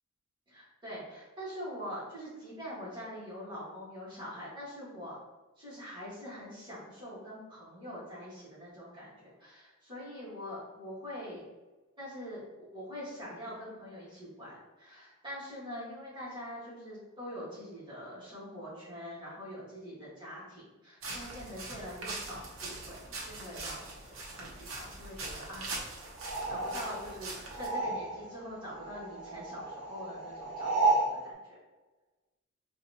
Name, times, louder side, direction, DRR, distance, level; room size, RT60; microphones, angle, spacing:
voice 1, 0.5-5.2 5.6-11.4 12.0-12.4 12.7-25.8 26.2-31.6, equal, 20° right, -9 dB, 1.5 m, -44 dB
sound 1, 21.0-27.7, right 2 dB, 65° right, 0.8 m, -42 dB
sound 2, 26.2-28.4 28.7-31.1, right 2 dB, 5° right, 1.0 m, -32 dB
3.9 x 2.4 x 2.7 m, 1.2 s
head